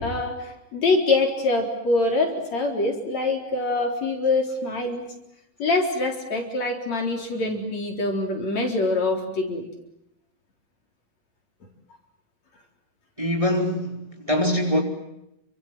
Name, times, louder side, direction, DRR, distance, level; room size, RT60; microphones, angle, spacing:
voice 1, 0.0-5.0 5.6-9.7, left 2 dB, 55° left, 3 dB, 5.1 m, -24 dB
voice 2, 13.2-14.8, left 1 dB, 10° right, 2 dB, 4.5 m, -23 dB
29.5 x 25.5 x 7.4 m, 0.83 s
omnidirectional pair, 3.8 m